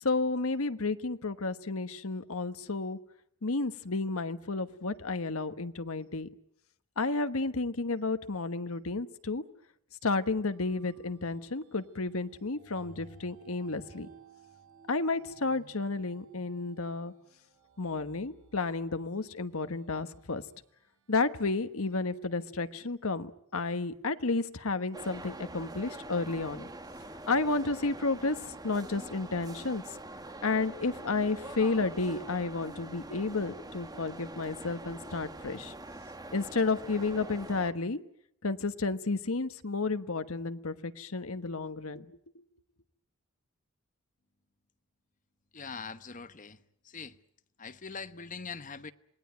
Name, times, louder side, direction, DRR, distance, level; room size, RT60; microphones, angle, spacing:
voice 1, 0.0-3.0 3.4-6.3 7.0-9.4 10.0-14.1 14.9-17.1 17.8-20.4 21.1-26.7 27.3-28.4 28.6-29.8 30.4-35.7 36.3-38.0 38.4-42.1, left 3 dB, 70° left, 1.2 m, -32 dB
sound 1, 10.4-22.8, right 4 dB, 80° right, 5.7 m, -59 dB
sound 2, 24.9-37.7, right 2 dB, 15° right, 1.2 m, -44 dB
voice 2, 45.5-47.2 47.6-48.9, left 5 dB, 35° left, 1.0 m, -42 dB
27.5 x 20.0 x 9.4 m
head